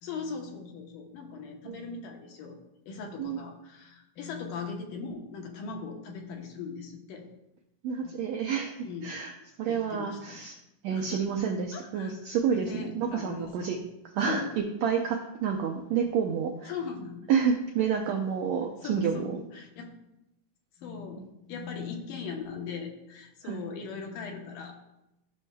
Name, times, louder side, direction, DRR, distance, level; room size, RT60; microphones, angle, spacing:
voice 1, 0.0-2.6 2.9-7.3 8.0-8.1 8.8-9.1 9.7-10.4 10.9-11.3 11.7-12.2 12.5-13.8 14.3-14.5 16.6-17.2 18.0-18.1 18.8-19.9 20.8-21.2 21.5-24.8, left 5 dB, 75° left, 1 dB, 2.5 m, -39 dB
voice 2, 7.8-10.6 10.8-13.8 14.1-16.7 17.3-19.4 21.2-21.3 23.4-23.6, right 7 dB, 85° right, 2 dB, 1.6 m, -29 dB
14.5 x 6.2 x 2.3 m, 0.89 s
omnidirectional pair, 3.8 m